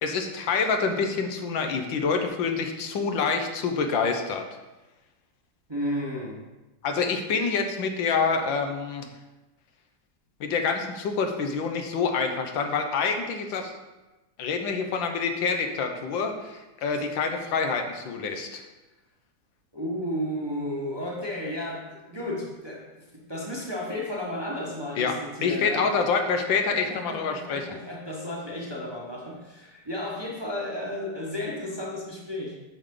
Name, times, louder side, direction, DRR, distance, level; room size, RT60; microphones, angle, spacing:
voice 1, 0.0-4.4 6.8-9.1 10.4-13.7 14.4-18.6 25.0-25.1 25.4-27.7, left 5 dB, 85° left, 5 dB, 1.6 m, -27 dB
voice 2, 5.7-6.4 19.7-26.0 26.7-32.6, left 1 dB, 15° right, -4 dB, 1.0 m, -33 dB
8.3 x 6.6 x 3.8 m, 1.1 s
omnidirectional pair, 2.0 m